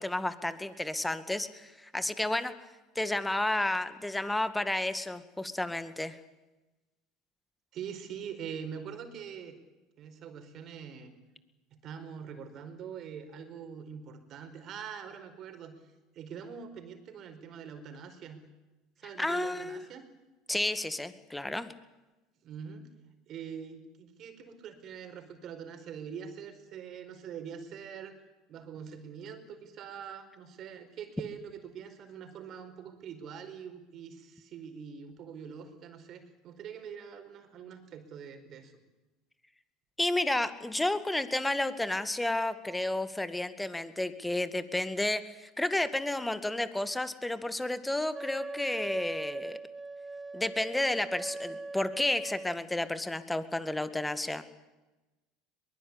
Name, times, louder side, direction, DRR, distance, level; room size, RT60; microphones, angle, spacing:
voice 1, 0.0-2.5 3.0-6.2 19.2-19.8 20.5-21.7 40.0-49.6 50.3-54.4, left 1 dB, 10° left, 11 dB, 2.0 m, -31 dB
voice 2, 7.7-9.6 10.0-11.1 11.8-15.8 16.1-18.4 19.0-20.1 22.4-22.9 23.3-28.2 28.5-38.7, right 7 dB, 50° right, 6 dB, 4.7 m, -44 dB
Wind instrument woodwind instrument, 48.1-52.6, right 3 dB, 20° right, 1.1 m, -40 dB
22.5 x 21.5 x 8.7 m, 1.1 s
hypercardioid pair, 80°, 0 cm